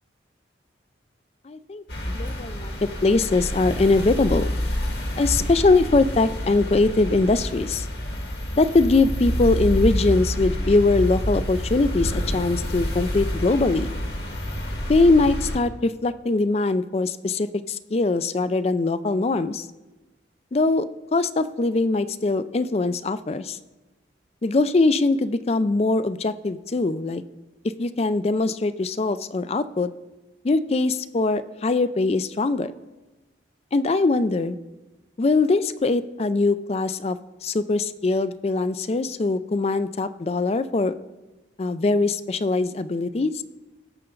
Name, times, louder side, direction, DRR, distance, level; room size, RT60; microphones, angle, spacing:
voice 1, 1.5-2.7 3.0-4.5 5.2-7.9 8.5-13.9 14.9-19.7 20.5-20.9 21.1-23.6 24.4-27.2 27.8-29.9 30.4-32.7 33.7-34.6 35.2-40.9 41.6-43.4, left 3 dB, 35° left, 14 dB, 0.4 m, -22 dB
sound 1, 1.9-15.6, equal, 55° left, 1.8 m, -28 dB
17.5 x 6.8 x 3.8 m, 1.1 s
head